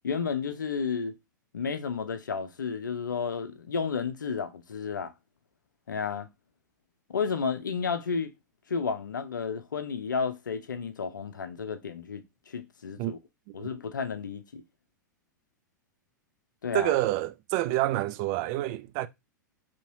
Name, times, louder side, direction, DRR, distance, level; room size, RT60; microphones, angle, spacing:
voice 1, 0.0-1.2 1.5-5.1 5.9-6.3 7.1-8.3 8.7-13.2 13.5-14.6 16.6-16.9, left 5 dB, 80° left, 0.6 m, -32 dB
voice 2, 16.7-19.1, right 16 dB, 45° right, 0.3 m, -28 dB
4.0 x 2.8 x 2.6 m
figure-of-eight pair, 95°, 10 cm